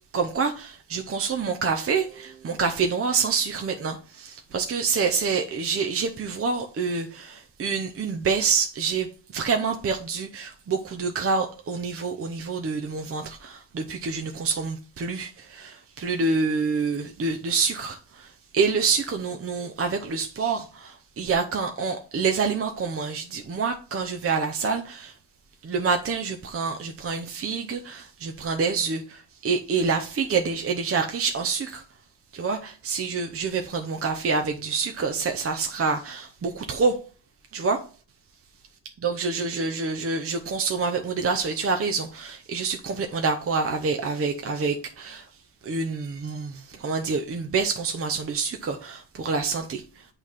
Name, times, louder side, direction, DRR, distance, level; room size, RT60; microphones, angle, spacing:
voice 1, 0.1-9.1 9.3-25.1 25.6-31.8 32.3-37.0 37.5-37.8 39.0-45.3 45.6-50.1, right 5 dB, 30° right, 0.7 m, -27 dB
8.6 x 3.4 x 5.7 m
cardioid pair, 130°, 45 cm